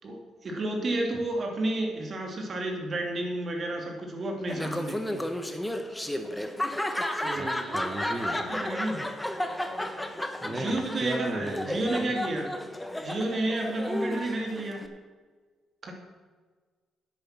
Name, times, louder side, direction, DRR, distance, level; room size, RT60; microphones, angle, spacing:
voice 1, 0.0-5.3 7.2-7.8 8.4-9.0 10.5-12.5 13.0-14.8 15.8-15.9, right 2 dB, 45° right, 2 dB, 2.8 m, -31 dB
Laughter, 4.5-14.9, left 1 dB, 5° left, 1.2 m, -33 dB
voice 2, 7.3-8.4 10.4-12.1, right 1 dB, 20° right, 0 dB, 1.6 m, -35 dB
10.5 x 8.8 x 6.1 m, 1.4 s
cardioid pair, 90°, 0 cm